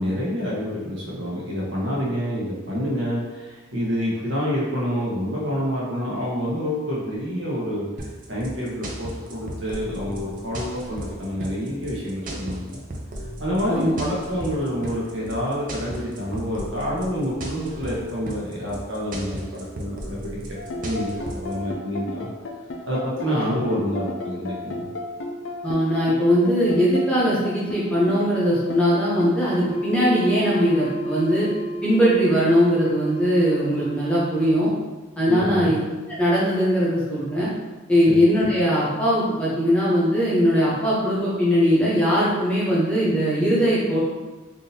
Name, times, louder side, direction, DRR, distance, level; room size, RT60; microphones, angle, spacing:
voice 1, 0.0-7.9 8.3-12.8 13.4-20.4 20.8-22.3 22.9-24.8 35.3-35.7 38.1-38.2, equal, 65° right, -5 dB, 1.0 m, -27 dB
sound 1, 8.0-21.5, right 1 dB, 40° right, 0.5 m, -35 dB
sound 2, 20.6-34.5, equal, 60° left, 0.4 m, -32 dB
voice 2, 25.6-31.5 31.8-34.7 35.2-35.8 36.1-37.5 37.9-44.0, equal, 5° left, -8 dB, 0.7 m, -20 dB
3.5 x 2.7 x 2.7 m, 1.2 s
head